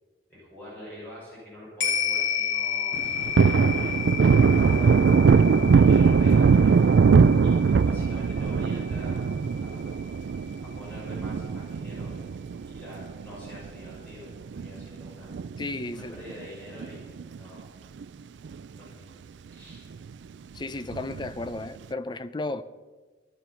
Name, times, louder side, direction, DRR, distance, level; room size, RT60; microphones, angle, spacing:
voice 1, 0.3-5.2 5.7-6.6 7.4-9.2 9.6-9.9 10.6-12.2 12.7-15.3 15.9-17.7 18.8-19.0 19.5-19.9, equal, 10° left, 5.5 m, -45 dB
sound 1, 1.8-10.4 10.7-10.8, left 8 dB, 85° left, 3.0 m, -32 dB
Thunder, 2.9-13.7 14.0-14.1 14.5-16.0 16.3-16.4 16.8-17.6 18.0-18.1 18.4-18.5 20.9-21.5, right 5 dB, 80° right, 0.4 m, -21 dB
voice 2, 15.6-16.2 20.5-22.6, left 2 dB, 25° left, 0.5 m, -33 dB
15.0 x 11.0 x 5.8 m
head